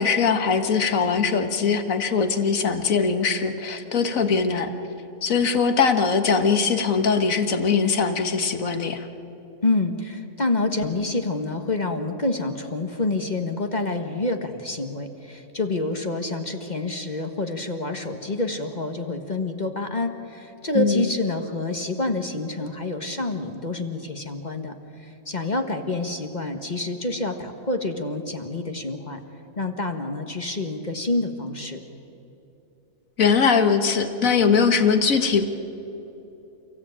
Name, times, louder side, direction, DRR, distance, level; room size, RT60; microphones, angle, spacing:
voice 1, 0.0-4.7 5.2-9.1 20.7-21.1 33.2-35.4, left 5 dB, 60° left, 7 dB, 1.8 m, -21 dB
voice 2, 9.6-24.7 25.0-29.2 29.6-31.8, left 2 dB, 30° left, 5 dB, 1.4 m, -27 dB
29.5 x 16.0 x 8.8 m, 3.0 s
omnidirectional pair, 1.6 m